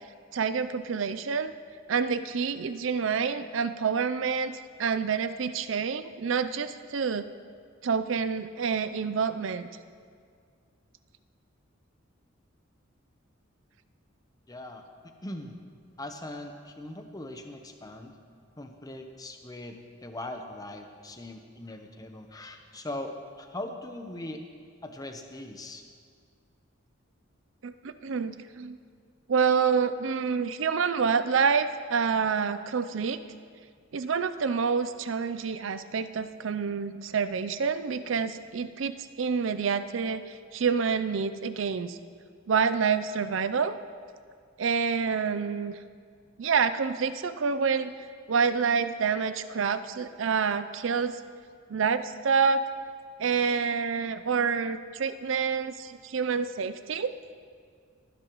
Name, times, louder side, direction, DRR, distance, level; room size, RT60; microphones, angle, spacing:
voice 1, 0.3-1.5 1.9-7.3 7.8-9.7 27.6-28.8 29.3-33.2 33.9-42.0 42.5-43.7 44.6-45.8 46.4-47.9 48.3-51.2 51.7-52.6 53.2-57.1, right 6 dB, 70° right, 12 dB, 0.5 m, -27 dB
voice 2, 14.5-14.8 15.2-15.5 16.0-18.1 18.6-24.4 24.8-25.8, left 1 dB, 20° left, 5 dB, 0.8 m, -40 dB
19.5 x 10.5 x 3.1 m, 2.1 s
head